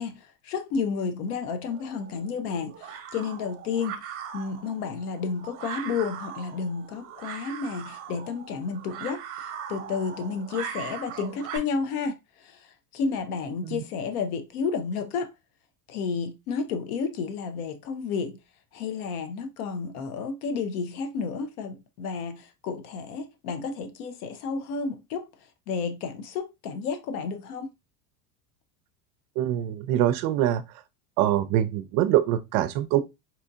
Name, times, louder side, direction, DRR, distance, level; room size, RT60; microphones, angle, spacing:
voice 1, 0.0-4.0 4.3-15.3 15.9-18.4 18.7-27.7, left 5 dB, 85° left, 0.8 m, -31 dB
sound 1, 1.7-11.6, right 8 dB, 30° right, 0.8 m, -40 dB
voice 2, 29.4-30.6 31.2-33.0, right 12 dB, 50° right, 0.5 m, -24 dB
4.3 x 2.7 x 2.3 m
supercardioid pair, 140°, 44 cm